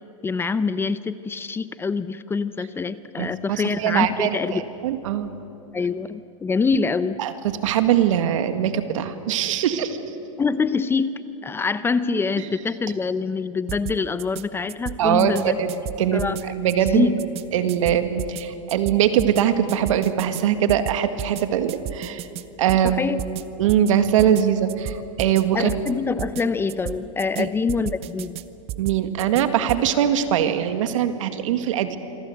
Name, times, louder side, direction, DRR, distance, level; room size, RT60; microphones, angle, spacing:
voice 1, 0.2-4.6 5.7-7.2 10.4-15.6 16.1-16.4 16.9-17.2 22.8-23.2 25.5-28.4, left 4 dB, 15° left, 14 dB, 0.7 m, -25 dB
voice 2, 3.2-5.3 7.2-10.0 15.0-15.7 16.0-17.1 17.5-22.3 22.6-23.1 23.6-25.7 27.4-27.5 28.8-32.0, right 9 dB, 70° right, 9 dB, 2.0 m, -22 dB
sound 1, 13.7-14.4 14.7-15.4 15.7-16.4 16.7-17.4 17.7-18.4 18.7-19.4 19.7-20.4 20.7-21.4 21.7-22.4 22.7-23.4 23.7-23.9 24.2-24.4 24.7-25.4 25.7-25.9 26.2-26.4 26.7-27.4 27.7-28.4 28.7-29.4 29.7-29.9, right 13 dB, 35° right, 1.0 m, -33 dB
27.0 x 23.5 x 8.0 m, 2.8 s
hypercardioid pair, 125°, 17 cm